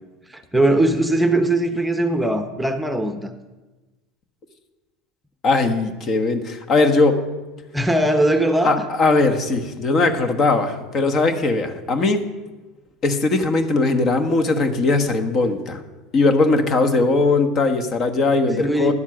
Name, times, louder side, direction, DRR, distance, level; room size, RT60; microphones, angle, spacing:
voice 1, 0.3-3.3 7.7-8.8 18.6-18.9, right 1 dB, 5° right, 7 dB, 0.8 m, -20 dB
voice 2, 5.4-7.2 8.6-12.2 13.0-15.8 16.1-18.9, left 3 dB, 40° left, 6 dB, 1.3 m, -19 dB
11.0 x 7.3 x 5.8 m, 1.2 s
hypercardioid pair, 95°, 0 cm